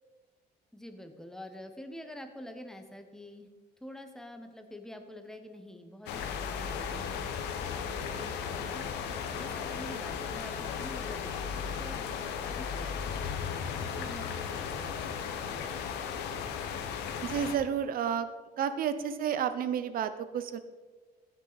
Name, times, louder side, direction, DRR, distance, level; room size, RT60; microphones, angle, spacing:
voice 1, 0.7-3.5 3.8-8.9 9.3-15.2, left 1 dB, 5° left, 6 dB, 1.1 m, -47 dB
sound 1, 6.1-17.6, left 7 dB, 85° left, 1.0 m, -36 dB
voice 2, 17.2-18.3 18.6-20.6, right 8 dB, 60° right, 11 dB, 0.8 m, -31 dB
15.0 x 6.3 x 4.1 m, 1.4 s
cardioid pair, 110°, 17 cm